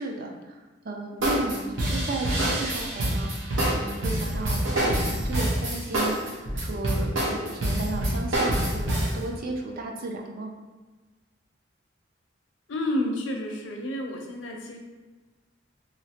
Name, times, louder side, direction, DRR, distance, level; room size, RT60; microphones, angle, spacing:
voice 1, 0.0-10.5, right 2 dB, 50° right, 2 dB, 0.4 m, -34 dB
sound 1, 1.2-9.2, right 1 dB, 85° right, 0.9 m, -26 dB
voice 2, 12.7-14.8, left 1 dB, 75° left, 2 dB, 0.5 m, -30 dB
3.1 x 2.8 x 2.8 m, 1.3 s
head